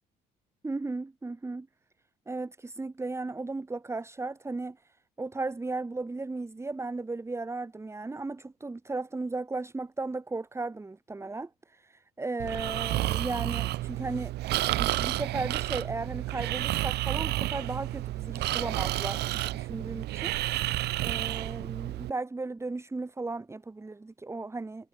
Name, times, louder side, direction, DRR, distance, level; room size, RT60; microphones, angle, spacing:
voice 1, 0.6-1.7 2.3-14.3 14.7-20.3 21.0-24.9, right 3 dB, 15° right, 3.1 m, -36 dB
Breathing, 12.4-22.1, right 16 dB, 80° right, 4.8 m, -31 dB
cardioid pair, 110°, 17 cm